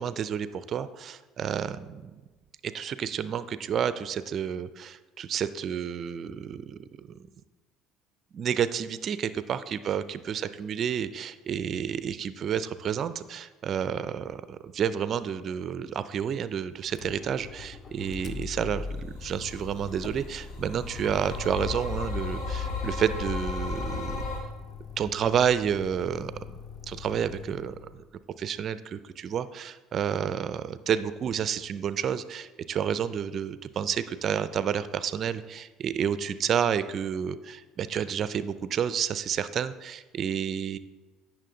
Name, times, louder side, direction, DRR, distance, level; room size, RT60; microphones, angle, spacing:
voice 1, 0.0-2.1 2.6-7.2 8.3-24.3 25.0-26.3 26.9-28.0 28.4-40.8, right 8 dB, 50° right, 14 dB, 0.4 m, -30 dB
Motor vehicle (road), 16.8-28.0, left 5 dB, 40° left, 0.7 m, -42 dB
sound 1, 19.1-24.4, left 4 dB, 70° left, 1.5 m, -34 dB
9.0 x 5.8 x 3.8 m, 1.2 s
supercardioid pair, 80°, 0 cm